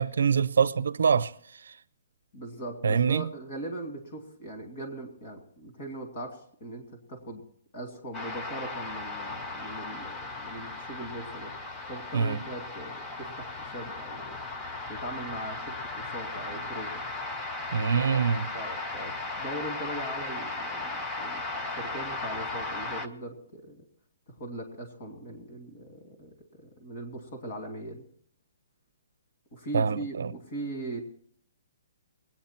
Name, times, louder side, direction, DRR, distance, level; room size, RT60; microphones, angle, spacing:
voice 1, 0.0-1.3 1.7-1.8 2.8-3.3 12.1-12.4 17.7-18.5 29.7-30.3, right 6 dB, 80° right, 0.5 m, -25 dB
voice 2, 2.3-7.4 7.7-11.6 11.9-14.4 14.9-17.0 18.1-18.3 18.5-23.8 24.3-28.0 29.5-31.0, right 1 dB, 40° left, 2.6 m, -40 dB
sound 1, 8.1-23.1, left 2 dB, 10° left, 0.4 m, -36 dB
22.0 x 8.9 x 4.4 m
hypercardioid pair, 175°, 0 cm